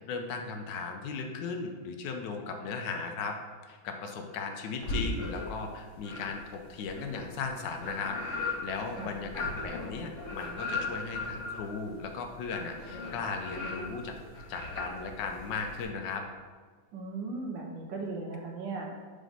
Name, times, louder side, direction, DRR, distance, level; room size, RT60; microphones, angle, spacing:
voice 1, 0.1-3.4 3.6-8.2 8.4-14.2 14.5-16.2, left 4 dB, 75° left, 4 dB, 1.3 m, -37 dB
sound 1, 4.8-5.6 6.0-15.8, left 3 dB, 45° left, 1.5 m, -37 dB
voice 2, 16.9-18.9, right 3 dB, 75° right, 1 dB, 1.6 m, -37 dB
5.1 x 3.7 x 5.3 m, 1.5 s
omnidirectional pair, 2.1 m